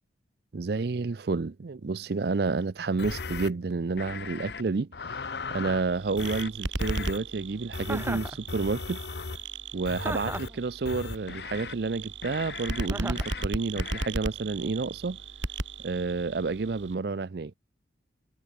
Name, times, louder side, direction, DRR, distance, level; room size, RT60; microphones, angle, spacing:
voice 1, 0.5-4.9 5.5-9.0 9.7-15.2 15.8-17.5, right 4 dB, 55° right, 0.5 m, -30 dB
sound 1, 3.0-3.5 4.0-4.6 4.9-5.8 6.2-6.5 6.8-7.2 7.7-9.4 9.8-10.5 10.8-11.7 12.2-12.9 13.2-13.4 13.8-14.1, left 4 dB, 60° left, 0.8 m, -37 dB
sound 2, 5.7-16.9, right 2 dB, 80° right, 2.9 m, -37 dB
Chuckle chortle, 7.9-8.4 10.0-10.6 12.9-13.3, right 2 dB, 10° right, 1.3 m, -35 dB
head